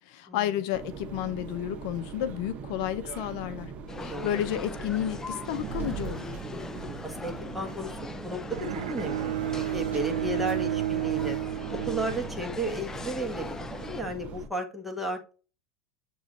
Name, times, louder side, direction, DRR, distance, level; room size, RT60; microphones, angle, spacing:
voice 1, 0.0-3.7 4.0-6.3, left 11 dB, 65° left, 0.6 m, -31 dB
sound 1, 0.7-14.5, right 6 dB, 40° right, 0.9 m, -40 dB
sound 2, 3.9-14.0, left 4 dB, 15° left, 0.4 m, -41 dB
voice 2, 3.9-4.4 7.0-11.4 11.7-15.3, right 1 dB, 5° right, 1.7 m, -34 dB
Bowed string instrument, 8.5-12.7, right 13 dB, 85° right, 0.4 m, -32 dB
8.1 x 3.1 x 3.9 m
supercardioid pair, 110°, 3 cm